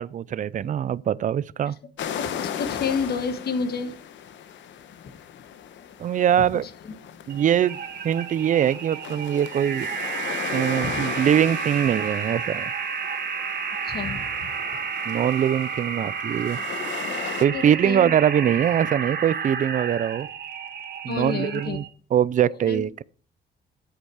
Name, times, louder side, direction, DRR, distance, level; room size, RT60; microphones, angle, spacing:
voice 1, 0.0-1.8 6.0-6.7 7.3-7.8 8.0-10.0 10.5-12.7 15.1-16.6 17.4-20.3 21.0-21.8 22.1-23.0, right 9 dB, 45° right, 0.4 m, -22 dB
sound 1, 2.0-17.4, left 9 dB, 85° left, 1.0 m, -37 dB
voice 2, 2.2-3.9 10.8-11.0 13.8-14.5 17.5-18.1 21.0-21.8 22.4-22.8, left 5 dB, 60° left, 1.4 m, -30 dB
sound 2, 7.3-21.9, right 6 dB, 60° right, 1.9 m, -31 dB
8.3 x 8.0 x 4.7 m
cardioid pair, 115°, 19 cm